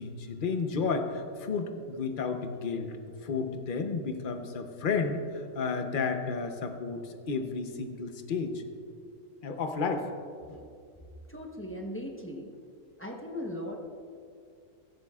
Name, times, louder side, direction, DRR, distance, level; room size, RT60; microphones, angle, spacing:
voice 1, 0.0-8.6 9.4-10.1 10.5-10.6, left 4 dB, 45° left, 6 dB, 0.9 m, -32 dB
voice 2, 11.3-12.5 13.0-13.8, left 1 dB, 10° left, 0 dB, 0.9 m, -38 dB
16.0 x 13.0 x 2.4 m, 2.3 s
omnidirectional pair, 1.4 m